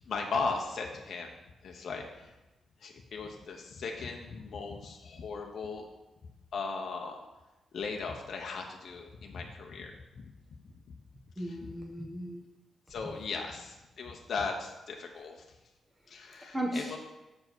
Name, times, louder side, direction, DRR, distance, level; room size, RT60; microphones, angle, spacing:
voice 1, 0.1-1.3 1.6-2.3 2.8-5.9 6.5-7.2 7.7-9.9 10.2-10.3 12.9-15.4 16.1-17.0, left 4 dB, 50° left, 1 dB, 0.8 m, -37 dB
voice 2, 11.4-12.5 13.0-13.1 16.3-16.9, right 1 dB, 10° right, -1 dB, 1.1 m, -37 dB
6.6 x 4.7 x 6.1 m, 1.1 s
wide cardioid pair, 170°, 0 cm